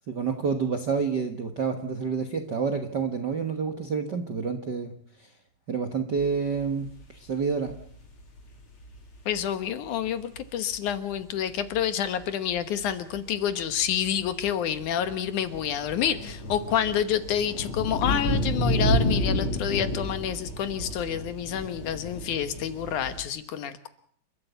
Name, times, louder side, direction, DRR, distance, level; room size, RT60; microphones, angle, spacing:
voice 1, 0.1-5.3 5.7-7.8, right 5 dB, 50° right, 6 dB, 1.2 m, -29 dB
sound 1, 6.2-6.3 6.5-7.0 7.4-9.4 10.1-10.2 10.3-10.4 10.7-10.9 11.5-12.2 12.5-23.2, equal, 40° left, 3.7 m, -31 dB
voice 2, 9.3-23.9, left 9 dB, 65° left, 11 dB, 2.5 m, -28 dB
29.0 x 13.5 x 8.1 m, 0.64 s
omnidirectional pair, 4.0 m